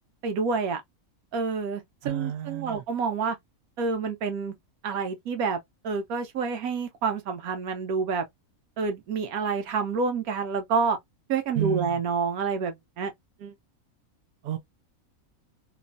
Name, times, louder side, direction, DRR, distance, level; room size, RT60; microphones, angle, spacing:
voice 1, 0.2-0.8 1.3-3.4 3.8-4.5 4.8-5.6 5.8-8.2 8.8-11.0 11.3-13.1 13.4-13.5, right 5 dB, 85° right, 1.2 m, -28 dB
voice 2, 2.0-2.8 11.6-12.0 14.4-14.6, right 12 dB, 70° right, 0.9 m, -30 dB
3.0 x 2.1 x 2.4 m
omnidirectional pair, 1.5 m